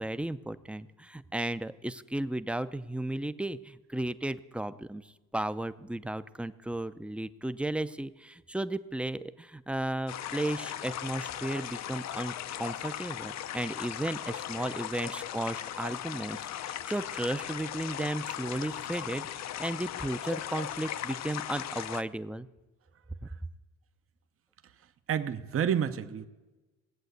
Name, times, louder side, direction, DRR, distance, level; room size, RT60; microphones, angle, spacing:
voice 1, 0.0-5.0 5.3-19.3 19.6-22.5, right 1 dB, 5° right, 13 dB, 0.5 m, -34 dB
sound 1, 10.1-22.0, left 11 dB, 65° left, 0.6 m, -38 dB
voice 2, 25.1-26.3, right 8 dB, 45° right, 10 dB, 0.8 m, -29 dB
17.5 x 8.1 x 8.0 m, 1.2 s
cardioid pair, 90°, 30 cm